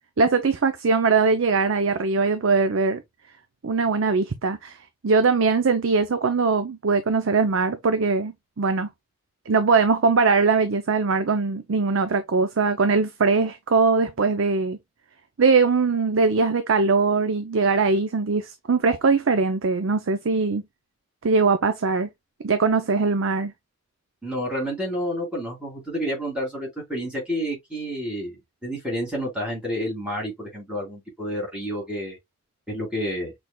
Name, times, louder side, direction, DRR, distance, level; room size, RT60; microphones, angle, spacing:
voice 1, 0.2-3.0 3.6-4.8 5.0-8.9 9.5-14.8 15.4-20.6 21.2-22.1 22.4-23.5, right 4 dB, 60° right, 0.5 m, -21 dB
voice 2, 24.2-32.2 32.7-33.3, equal, 5° right, 3.3 m, -29 dB
5.9 x 3.4 x 2.2 m
head